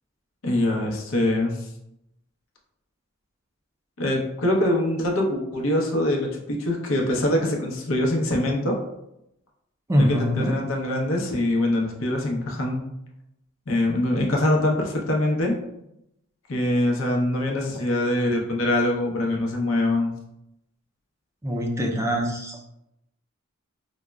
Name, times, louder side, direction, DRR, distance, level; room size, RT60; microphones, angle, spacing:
voice 1, 0.4-1.7 4.0-8.8 10.0-12.8 13.7-15.6 16.5-20.1, left 1 dB, 70° left, 0 dB, 0.7 m, -23 dB
voice 2, 9.9-10.6 21.4-22.6, equal, 15° right, 0 dB, 0.4 m, -23 dB
4.8 x 2.0 x 2.2 m, 0.83 s
head